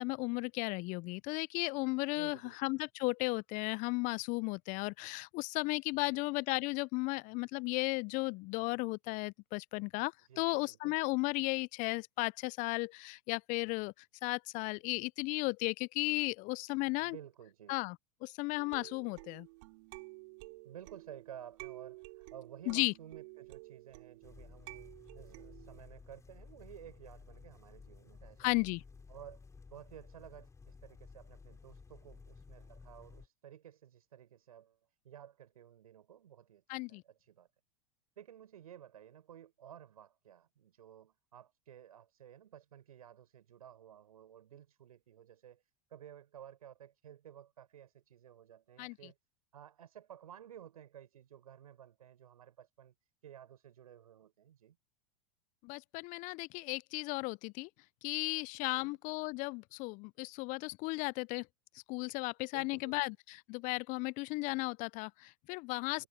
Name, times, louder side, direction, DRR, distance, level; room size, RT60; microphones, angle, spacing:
voice 1, 0.0-13.9 14.2-17.2 17.7-18.0 18.2-19.5 22.7-22.9 28.4-28.8 36.7-37.0 48.8-49.0 55.6-57.7 58.0-61.5 61.9-66.0, left 25 dB, 45° left, 0.6 m, -35 dB
voice 2, 2.1-2.6 5.9-6.3 10.3-11.0 17.0-17.8 20.6-28.7 29.1-29.4 29.7-34.8 35.0-37.5 38.2-45.6 45.9-49.2 49.5-52.9 53.2-54.8 58.7-59.0 62.5-63.1, right 10 dB, 75° right, 7.1 m, -54 dB
sound 1, 18.6-25.8, right 25 dB, 60° right, 7.3 m, -52 dB
sound 2, 24.2-33.3, left 4 dB, 15° left, 3.8 m, -55 dB
hypercardioid pair, 95°, 19 cm